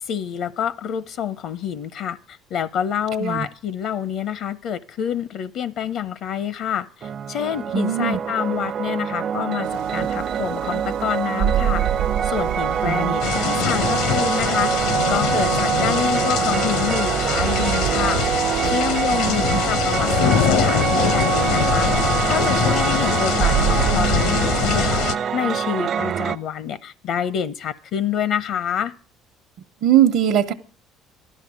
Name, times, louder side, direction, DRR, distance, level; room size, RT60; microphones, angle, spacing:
voice 1, 0.0-11.8 12.2-18.2 18.6-28.9, left 9 dB, 60° left, 0.7 m, -27 dB
sound 1, 7.0-26.4, right 8 dB, 40° right, 0.6 m, -25 dB
voice 2, 7.7-8.2 12.8-13.1 19.1-19.4 29.8-30.5, right 10 dB, 65° right, 1.0 m, -20 dB
sound 2, 9.6-25.1, right 11 dB, 90° right, 0.7 m, -29 dB
sound 3, 13.2-25.2, left 8 dB, 85° left, 1.1 m, -23 dB
15.5 x 12.0 x 6.3 m
cardioid pair, 120°, 0 cm